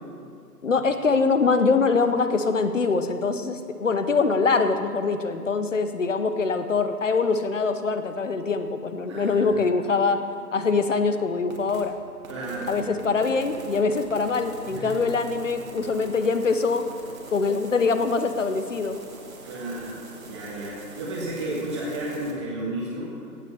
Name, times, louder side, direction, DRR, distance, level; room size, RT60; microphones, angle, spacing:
voice 1, 0.6-10.2 10.5-11.9 12.7-16.9 17.3-19.0, left 4 dB, 50° left, 9 dB, 0.9 m, -23 dB
voice 2, 9.1-9.6 12.3-13.3 14.7-15.0 19.4-23.1, right 1 dB, 15° right, -6 dB, 1.5 m, -33 dB
sound 1, 11.5-11.8 12.2-22.3, right 2 dB, 55° right, 2.4 m, -43 dB
17.0 x 6.0 x 6.8 m, 2.3 s
figure-of-eight pair, 145°, 49 cm